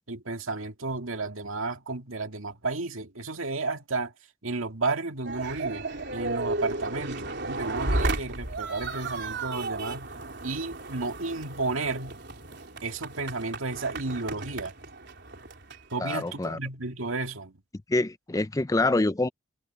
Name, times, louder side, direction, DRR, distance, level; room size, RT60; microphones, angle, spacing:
voice 1, 0.1-4.1 4.4-5.8 6.1-10.1 10.4-12.2 12.8-14.7 15.9-17.5, right 3 dB, 80° right, 2.2 m, -32 dB
sound 1, 5.2-16.5, right 2 dB, 55° right, 4.1 m, -34 dB
voice 2, 16.0-16.6 17.9-19.3, left 2 dB, 15° left, 0.5 m, -26 dB
head